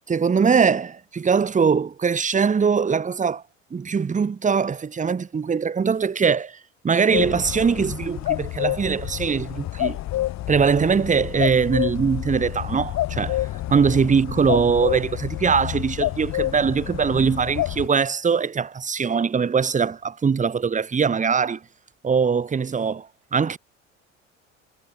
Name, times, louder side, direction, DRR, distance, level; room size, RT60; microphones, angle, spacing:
voice 1, 0.1-3.4 3.7-6.6 6.8-10.0 10.5-21.6 22.0-23.6, right 6 dB, 20° right, 1.8 m, -22 dB
sound 1, 7.1-17.9, left 15 dB, 45° left, 3.2 m, -28 dB
figure-of-eight pair, 65°, 39 cm